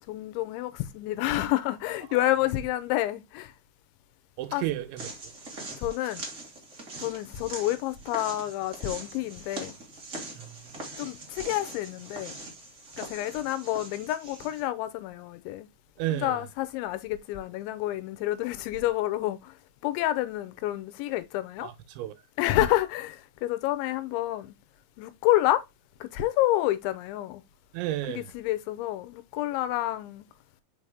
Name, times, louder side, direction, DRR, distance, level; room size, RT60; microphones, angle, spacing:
voice 1, 0.1-3.5 4.5-4.6 5.7-6.3 7.0-9.7 11.0-12.4 13.0-15.7 16.1-19.6 19.8-21.7 22.4-24.5 25.0-25.6 26.0-27.4 28.1-30.3, left 14 dB, 85° left, 3.1 m, -29 dB
voice 2, 4.4-5.1 10.3-10.6 16.0-16.5 21.6-22.1 27.7-28.3, right 14 dB, 90° right, 3.2 m, -32 dB
sound 1, 5.0-14.6, right 2 dB, 70° right, 0.7 m, -42 dB
5.8 x 5.7 x 3.5 m
omnidirectional pair, 5.2 m